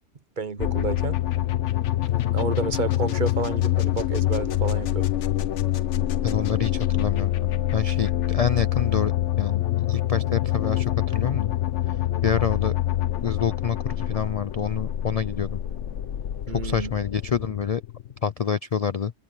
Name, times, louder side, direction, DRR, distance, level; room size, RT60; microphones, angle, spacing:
voice 1, 0.4-1.2 2.3-5.1 16.5-16.9, right 4 dB, 40° right, 1.0 m, -30 dB
sound 1, 0.6-18.3, left 13 dB, 70° left, 1.1 m, -26 dB
voice 2, 6.2-11.5 11.9-12.0 12.2-12.7 13.2-15.6 16.5-17.8 18.2-19.1, left 7 dB, 50° left, 0.4 m, -27 dB
omnidirectional pair, 1.3 m